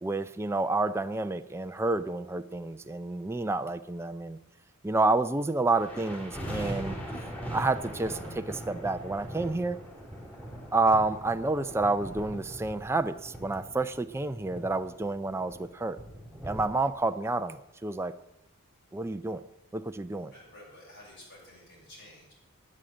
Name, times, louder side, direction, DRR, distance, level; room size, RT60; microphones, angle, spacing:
voice 1, 0.0-4.4 4.8-7.0 7.5-9.8 10.7-16.0 16.4-18.1 18.9-19.4 19.7-20.3, right 2 dB, 10° right, 9 dB, 0.4 m, -29 dB
sound 1, 5.7-16.6, equal, 5° left, 3.8 m, -41 dB
voice 2, 20.3-22.3, left 1 dB, 55° left, -6 dB, 6.6 m, -51 dB
12.5 x 8.6 x 7.8 m, 0.91 s
head